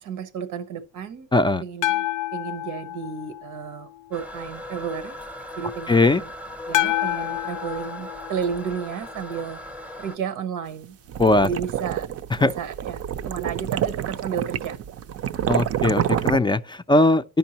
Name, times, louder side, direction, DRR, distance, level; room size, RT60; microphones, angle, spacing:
voice 1, 0.0-1.3 1.6-2.1 2.3-5.2 5.6-6.3 6.7-9.6 10.0-11.0 11.4-12.1 12.4-14.8, right 7 dB, 90° right, 0.9 m, -32 dB
voice 2, 1.3-1.6 5.9-6.2 11.2-11.5 12.3-12.5 15.5-17.2, left 2 dB, 15° left, 0.4 m, -19 dB
sound 1, 1.8-4.0 6.7-9.1, left 14 dB, 75° left, 0.5 m, -28 dB
Toilet flush, 4.1-10.2, left 1 dB, 5° right, 0.7 m, -38 dB
sound 2, 10.8-16.4, right 10 dB, 55° right, 0.5 m, -27 dB
10.5 x 5.3 x 2.8 m
cardioid pair, 90°, 30 cm